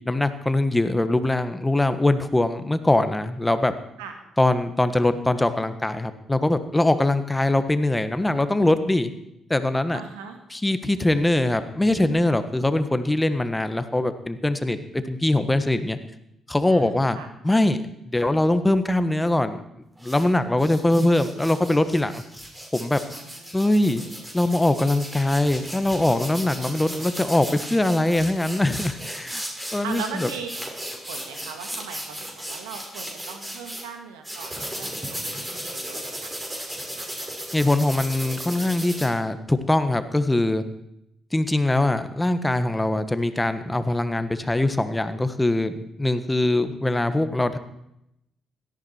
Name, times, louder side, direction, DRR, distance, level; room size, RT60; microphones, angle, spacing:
voice 1, 0.0-3.7 4.4-9.1 9.5-10.0 10.5-16.0 16.5-17.8 18.0-19.6 20.0-22.2 22.7-23.0 23.5-24.0 24.3-29.4 29.7-30.3 37.5-40.6 41.3-47.6, left 1 dB, 15° left, 11 dB, 1.4 m, -22 dB
voice 2, 9.9-10.4 16.7-17.3 23.1-23.6 29.8-30.5 31.1-37.1, right 7 dB, 80° right, 5 dB, 2.0 m, -39 dB
sound 1, 20.0-20.2 20.6-33.8 34.2-39.1, right 1 dB, 15° right, 5.5 m, -35 dB
17.5 x 13.5 x 4.5 m, 0.80 s
hypercardioid pair, 45°, 0 cm